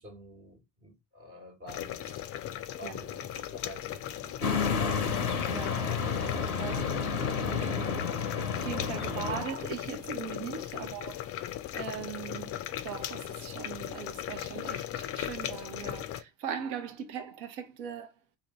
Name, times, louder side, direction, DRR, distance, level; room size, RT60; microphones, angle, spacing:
voice 1, 0.0-2.3 2.8-5.1 10.7-11.0 12.3-12.6, equal, 30° right, 1.3 m, -49 dB
sound 1, 1.7-16.2, left 11 dB, 35° left, 0.4 m, -38 dB
voice 2, 2.8-3.1 5.5-8.0 8.6-11.2 11.7-12.4 12.8-18.1, right 7 dB, 60° right, 0.7 m, -40 dB
sound 2, 4.4-9.4, left 6 dB, 90° left, 0.6 m, -31 dB
2.7 x 2.6 x 4.1 m
figure-of-eight pair, 50°, 43 cm